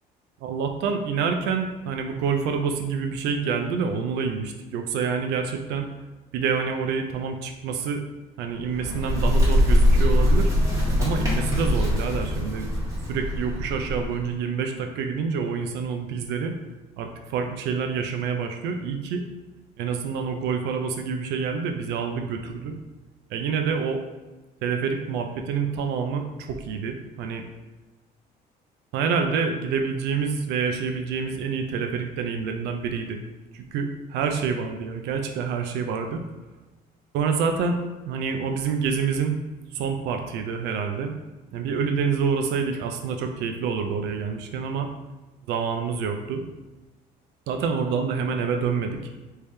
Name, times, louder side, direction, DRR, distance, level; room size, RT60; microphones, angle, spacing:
voice 1, 0.4-5.9 6.3-8.0 8.4-10.5 11.0-12.7 13.1-16.6 17.0-19.2 19.8-22.8 23.3-24.0 24.6-27.4 28.9-33.2 33.5-36.2 37.1-37.8 38.1-39.4 39.7-41.1 41.5-44.9 45.5-46.4 47.5-49.0, right 6 dB, 85° right, 5 dB, 0.5 m, -27 dB
Bird, 8.6-14.3, left 1 dB, 20° right, 1.3 m, -22 dB
3.4 x 2.8 x 3.2 m, 1.2 s
cardioid pair, 110°, 17 cm